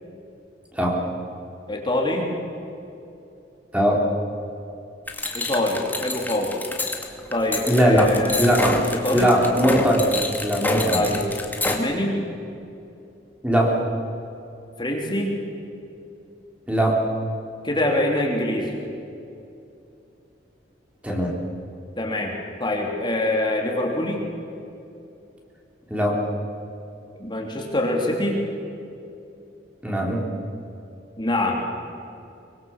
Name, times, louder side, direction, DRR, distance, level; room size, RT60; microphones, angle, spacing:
voice 1, 1.7-2.3 5.3-6.5 7.3-8.6 9.0-9.3 10.9-11.2 11.6-12.2 14.8-15.4 17.6-18.7 22.0-24.3 27.2-28.4 31.2-31.6, left 1 dB, 25° left, 0 dB, 3.3 m, -24 dB
voice 2, 3.7-4.1 7.7-8.8 9.1-10.1 10.4-11.0 13.4-13.8 16.7-17.1 21.0-21.4 25.9-26.2 29.8-30.2, equal, 5° right, -2 dB, 3.7 m, -20 dB
sound 1, 5.1-11.8, left 2 dB, 10° left, 2.2 m, -28 dB
24.0 x 23.0 x 7.4 m, 2.7 s
head